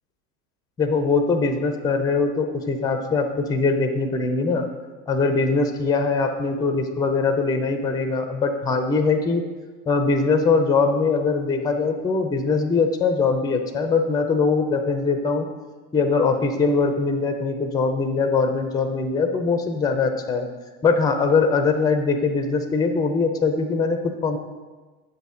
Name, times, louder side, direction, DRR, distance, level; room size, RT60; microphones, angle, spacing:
voice 1, 0.8-4.7 5.1-9.5 9.9-15.5 15.9-20.5 20.8-24.4, left 4 dB, 10° left, 7 dB, 0.4 m, -22 dB
8.0 x 6.0 x 3.7 m, 1.3 s
figure-of-eight pair, 80°, 47 cm